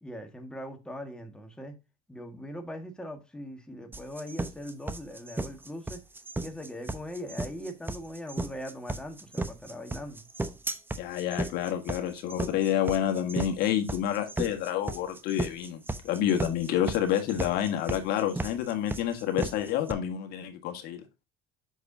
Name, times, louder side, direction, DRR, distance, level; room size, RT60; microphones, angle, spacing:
voice 1, 0.0-1.8 2.1-6.0 6.4-10.3, equal, 5° left, 1.7 m, -40 dB
sound 1, 3.9-19.9, right 2 dB, 10° right, 0.9 m, -34 dB
voice 2, 11.0-21.0, left 10 dB, 65° left, 1.6 m, -29 dB
8.1 x 6.1 x 2.7 m
supercardioid pair, 100°, 17 cm